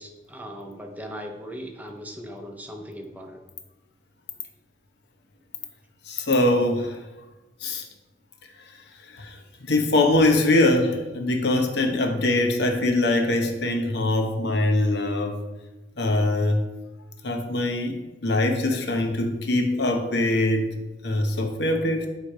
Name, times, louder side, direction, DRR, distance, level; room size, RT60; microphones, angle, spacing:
voice 1, 0.0-3.4, equal, 10° right, 3 dB, 0.7 m, -38 dB
voice 2, 6.1-7.0 7.6-7.8 9.1-15.4 16.0-16.6 17.2-20.7 21.0-22.1, left 2 dB, 70° left, 4 dB, 0.9 m, -23 dB
9.1 x 3.2 x 4.8 m, 1.1 s
head